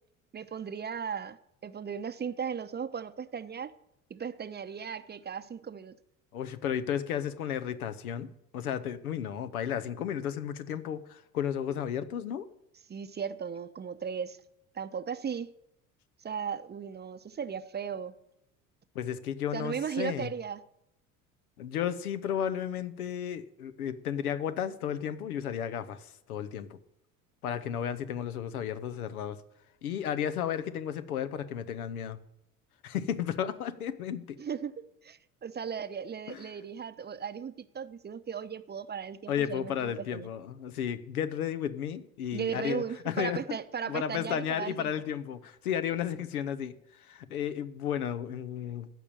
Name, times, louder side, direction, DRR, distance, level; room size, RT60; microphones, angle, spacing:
voice 1, 0.3-1.4 1.6-3.7 4.1-6.0 12.9-14.4 14.7-15.5 16.2-18.2 19.5-20.6 34.4-40.3 42.3-44.9, right 7 dB, 25° right, 0.8 m, -36 dB
voice 2, 6.3-8.3 8.5-12.5 18.9-20.3 21.6-26.8 27.4-29.4 29.8-32.2 32.8-34.4 36.3-36.4 39.3-43.4 43.9-46.7 47.0-48.9, left 9 dB, 80° left, 1.0 m, -33 dB
14.5 x 5.5 x 8.8 m
figure-of-eight pair, 65°, 43 cm